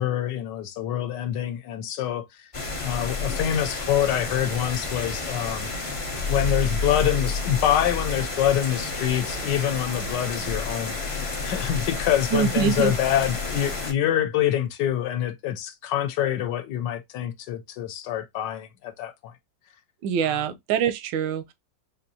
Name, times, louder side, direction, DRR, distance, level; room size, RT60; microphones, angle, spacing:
voice 1, 0.0-2.5 2.8-5.7 6.3-19.3 20.2-20.4, left 11 dB, 75° left, 1.2 m, -26 dB
sound 1, 2.5-13.9, left 3 dB, 60° left, 0.3 m, -30 dB
voice 2, 12.3-12.9 20.0-21.5, right 8 dB, 85° right, 1.3 m, -24 dB
4.3 x 2.7 x 2.7 m
omnidirectional pair, 2.0 m